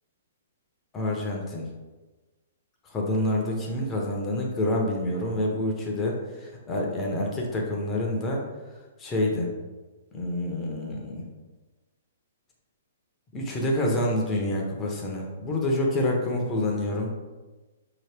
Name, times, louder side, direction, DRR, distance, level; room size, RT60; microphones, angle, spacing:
voice 1, 0.9-1.7 2.8-8.4 9.0-9.5 10.1-11.3 13.3-17.1, left 1 dB, 15° left, -1 dB, 0.6 m, -27 dB
4.1 x 2.9 x 3.3 m, 1.2 s
hypercardioid pair, 160°, 0 cm